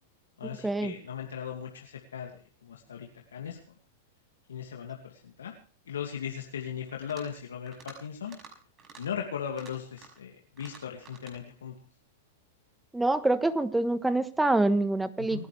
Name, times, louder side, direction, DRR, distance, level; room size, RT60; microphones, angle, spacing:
voice 1, 0.4-3.6 4.5-5.5 5.9-8.4 9.0-11.7 15.2-15.4, left 8 dB, 85° left, 1 dB, 2.4 m, -38 dB
sound 1, 6.9-7.4 7.7-8.0 8.3-8.5 8.8-9.0 9.5-10.2 10.6-11.4, right 5 dB, 30° right, 5.8 m, -50 dB
voice 2, 12.9-15.5, right 2 dB, 5° right, 12 dB, 1.3 m, -26 dB
29.5 x 10.5 x 3.4 m, 0.40 s
hypercardioid pair, 115°, 0 cm